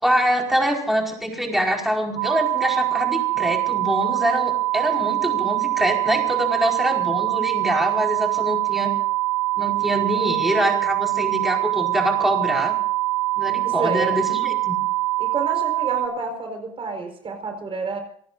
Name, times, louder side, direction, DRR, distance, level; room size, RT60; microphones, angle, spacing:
voice 1, 0.0-8.9 9.6-12.7 13.4-14.7, equal, ahead, 1 dB, 4.8 m, -24 dB
sound 1, 2.2-16.1, right 18 dB, 75° right, 3.1 m, -23 dB
voice 2, 13.6-14.1 15.2-18.0, right 3 dB, 30° right, 4 dB, 4.6 m, -29 dB
28.0 x 19.0 x 2.6 m, 0.65 s
cardioid pair, 135°, 17 cm